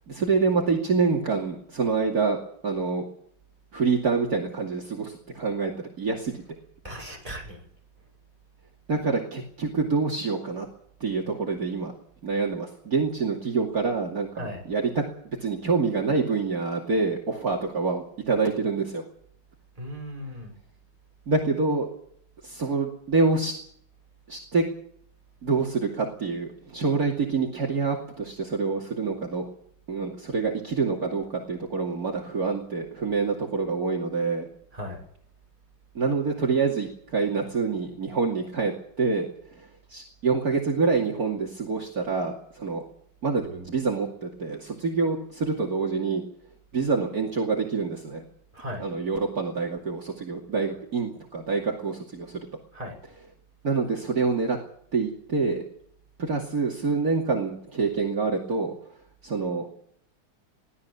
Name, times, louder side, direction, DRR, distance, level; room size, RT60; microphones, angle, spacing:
voice 1, 0.1-2.4 2.6-3.1 3.7-5.7 6.0-6.4 8.9-10.7 11.0-11.9 12.2-15.0 15.4-19.0 21.3-21.9 22.4-23.6 24.3-24.6 25.4-29.4 29.9-34.5 35.9-42.8 43.2-46.2 46.7-48.2 48.8-52.5 53.6-54.6 54.9-55.6 56.2-58.7 59.2-59.7, right 4 dB, 50° right, -1 dB, 3.0 m, -26 dB
voice 2, 6.8-7.6 14.3-14.6 19.8-20.5 34.7-35.0 48.5-48.8 52.7-52.9, equal, 15° right, 0 dB, 6.6 m, -37 dB
23.0 x 16.5 x 7.1 m, 0.66 s
omnidirectional pair, 2.1 m